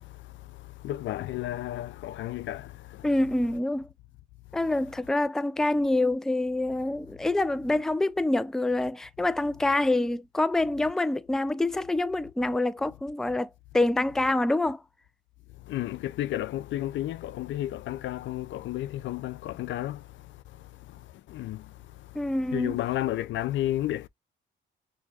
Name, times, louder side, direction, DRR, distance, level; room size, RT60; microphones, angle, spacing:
voice 1, 0.0-3.1 15.6-24.1, left 14 dB, 70° left, 0.4 m, -33 dB
voice 2, 3.0-3.9 4.5-14.8 22.2-22.7, left 2 dB, 5° left, 0.3 m, -26 dB
6.3 x 2.2 x 2.7 m
cardioid pair, 90°, 20 cm